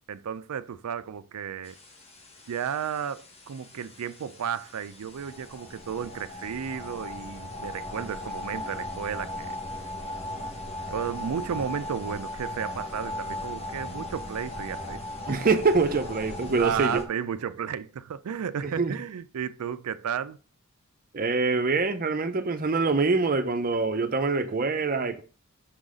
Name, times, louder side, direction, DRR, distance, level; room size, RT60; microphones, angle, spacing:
voice 1, 0.1-1.8 2.5-9.6 10.9-15.0 16.6-20.4, right 8 dB, 85° right, 0.4 m, -33 dB
sound 1, 1.7-17.0, left 1 dB, 30° left, 1.0 m, -38 dB
voice 2, 15.3-17.0 18.6-18.9 21.1-25.2, right 4 dB, 40° right, 0.6 m, -25 dB
6.3 x 3.9 x 4.9 m
head